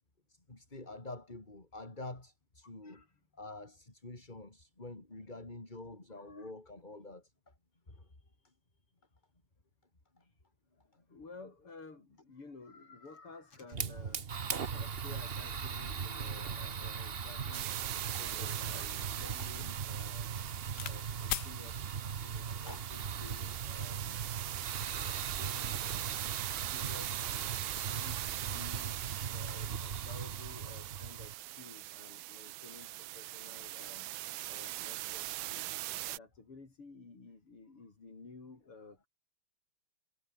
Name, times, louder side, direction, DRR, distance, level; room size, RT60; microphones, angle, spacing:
voice 1, 0.3-3.0 3.3-7.5 7.9-8.1 10.2-10.3 14.6-14.8 18.1-18.2 19.2-19.5 22.7-22.9 29.5-29.6, left 2 dB, 20° left, 3.7 m, -48 dB
voice 2, 6.1-6.5 10.8-20.3 20.8-27.5 27.9-29.0 29.3-34.1 34.5-35.8 36.0-39.1, left 3 dB, 85° left, 6.0 m, -54 dB
Fire, 13.7-31.3, right 6 dB, 40° right, 0.9 m, -39 dB
sound 1, 17.5-36.2, right 17 dB, 75° right, 1.2 m, -41 dB
sound 2, 18.2-21.0 21.3-21.5 22.4-22.8, left 12 dB, 60° left, 1.2 m, -43 dB
omnidirectional pair, 2.4 m